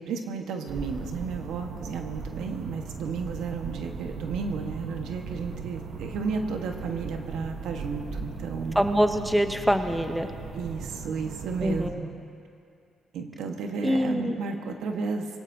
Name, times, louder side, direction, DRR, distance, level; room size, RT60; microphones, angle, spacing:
voice 1, 0.0-8.9 10.5-12.1 13.1-15.4, right 5 dB, 80° right, 3 dB, 1.4 m, -33 dB
sound 1, 0.7-11.9, right 5 dB, 60° right, 1.2 m, -38 dB
voice 2, 8.8-10.3 11.6-12.0 13.8-14.4, equal, ahead, 7 dB, 0.8 m, -24 dB
23.0 x 16.5 x 2.8 m, 2.5 s
cardioid pair, 90°, 0 cm